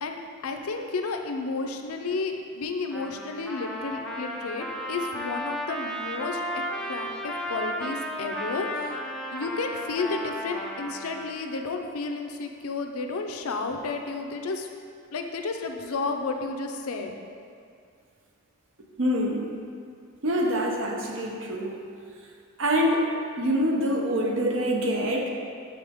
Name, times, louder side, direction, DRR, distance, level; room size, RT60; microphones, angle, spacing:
voice 1, 0.0-6.4 6.8-9.0 9.3-14.7 15.1-17.1, left 3 dB, 85° left, 4 dB, 0.5 m, -32 dB
Trumpet, 2.9-11.3, equal, ahead, 0.3 m, -34 dB
voice 2, 19.0-19.4 20.2-21.7 22.6-23.0 23.4-25.3, equal, 60° right, 0 dB, 0.7 m, -25 dB
6.0 x 5.0 x 3.5 m, 2.4 s
head